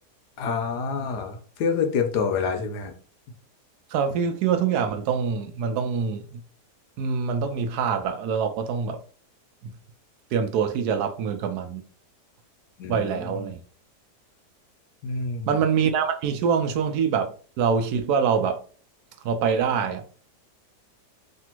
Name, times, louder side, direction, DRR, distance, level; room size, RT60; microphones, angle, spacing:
voice 1, 0.4-2.9 12.8-13.5 15.0-15.6, left 5 dB, 80° left, 1.3 m, -27 dB
voice 2, 3.9-6.4 7.0-9.0 9.6-9.7 10.3-11.8 12.9-13.6 15.5-18.6 19.2-20.1, right 6 dB, 75° right, 1.1 m, -25 dB
3.3 x 2.5 x 4.4 m
omnidirectional pair, 1.8 m